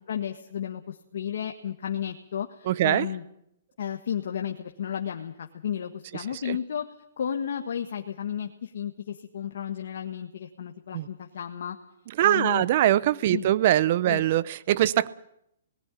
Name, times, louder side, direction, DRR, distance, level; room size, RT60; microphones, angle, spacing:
voice 1, 0.0-3.2 3.8-6.9 7.2-11.8 12.2-12.7 13.3-13.5 14.1-14.2, left 9 dB, 70° left, 4 dB, 1.5 m, -33 dB
voice 2, 2.7-3.1 6.4-6.6 10.9-11.1 12.2-15.1, right 13 dB, 45° right, 19 dB, 0.8 m, -22 dB
19.0 x 14.0 x 9.9 m, 0.78 s
hypercardioid pair, 150°, 0 cm